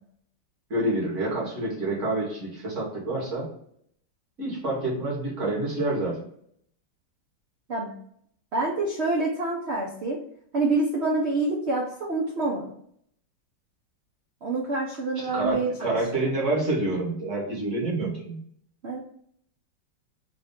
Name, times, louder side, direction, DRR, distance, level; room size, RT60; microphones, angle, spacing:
voice 1, 0.7-3.5 4.4-6.2 15.3-18.4, right 2 dB, 40° right, -3 dB, 1.5 m, -27 dB
voice 2, 8.5-10.2 10.5-12.7 14.4-16.3 18.8-19.0, right 2 dB, 80° right, -3 dB, 0.5 m, -27 dB
4.0 x 2.3 x 3.6 m, 0.66 s
omnidirectional pair, 2.1 m